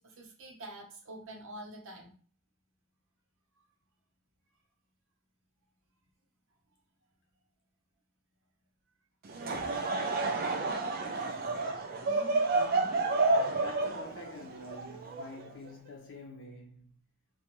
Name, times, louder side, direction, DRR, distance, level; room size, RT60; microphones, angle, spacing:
voice 1, 0.0-2.1, right 1 dB, 65° right, 0.8 m, -46 dB
Laughter / Crowd, 9.2-15.7, right 3 dB, 45° right, 0.4 m, -30 dB
voice 2, 12.1-17.0, left 1 dB, 60° left, 0.7 m, -46 dB
2.5 x 2.3 x 2.9 m
head